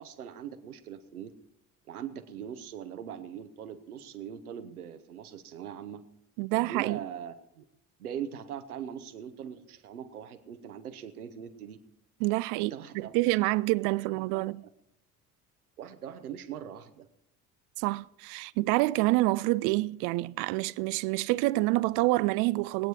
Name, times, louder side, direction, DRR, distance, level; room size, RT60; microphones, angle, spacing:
voice 1, 0.0-1.3 1.9-6.0 6.5-7.6 8.0-11.8 12.5-13.2 14.0-14.5 15.8-17.1, right 9 dB, 75° right, 1.1 m, -41 dB
voice 2, 6.4-7.0 12.2-14.6 17.8-22.9, right 20 dB, 45° right, 0.4 m, -27 dB
20.5 x 9.1 x 4.7 m
figure-of-eight pair, 55°, 45 cm